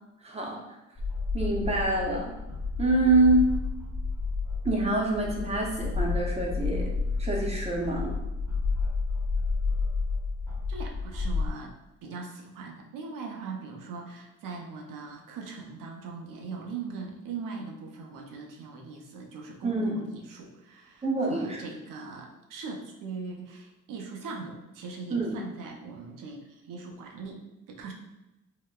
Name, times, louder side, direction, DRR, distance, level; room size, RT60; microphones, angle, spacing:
voice 1, 0.2-0.6 1.3-2.3 2.8-3.5 4.6-6.9 7.2-8.2 19.6-20.0 21.0-21.6 25.1-25.3, right 2 dB, 20° right, -2 dB, 0.6 m, -26 dB
sound 1, 1.0-11.5, left 4 dB, 10° left, 0.9 m, -30 dB
voice 2, 10.7-11.7 12.0-27.9, right 4 dB, 85° right, 1 dB, 0.6 m, -40 dB
3.7 x 2.1 x 2.2 m, 0.95 s
cardioid pair, 95°, 32 cm